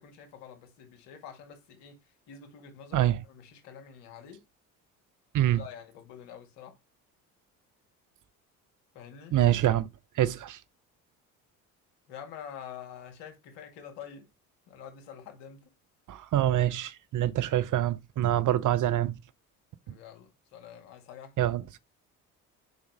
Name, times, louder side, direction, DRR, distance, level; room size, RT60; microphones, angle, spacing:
voice 1, 0.0-2.0 2.3-4.4 5.4-6.8 8.9-9.4 12.1-14.3 14.7-15.7 19.9-21.4, left 8 dB, 70° left, 2.2 m, -47 dB
voice 2, 2.9-3.2 5.3-5.6 9.3-9.9 10.2-10.6 16.1-19.2 21.4-21.6, right 12 dB, 45° right, 0.6 m, -25 dB
5.0 x 4.1 x 4.7 m
hypercardioid pair, 60°, 43 cm